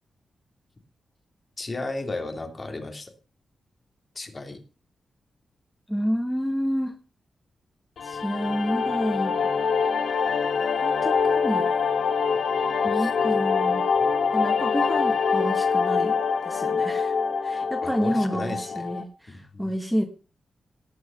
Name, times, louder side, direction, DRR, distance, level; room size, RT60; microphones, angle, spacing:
voice 1, 1.6-3.1 4.1-4.6 12.9-13.1 17.8-18.9 19.3-19.7, left 2 dB, 30° left, 5 dB, 3.1 m, -34 dB
voice 2, 5.9-6.9 8.0-9.4 10.8-11.7 12.8-13.9 14.3-17.1 17.4-20.0, equal, ahead, 4 dB, 1.5 m, -29 dB
sound 1, 8.0-19.0, left 5 dB, 70° left, 1.9 m, -24 dB
18.0 x 6.2 x 6.9 m, 0.37 s
wide cardioid pair, 120°, 0 cm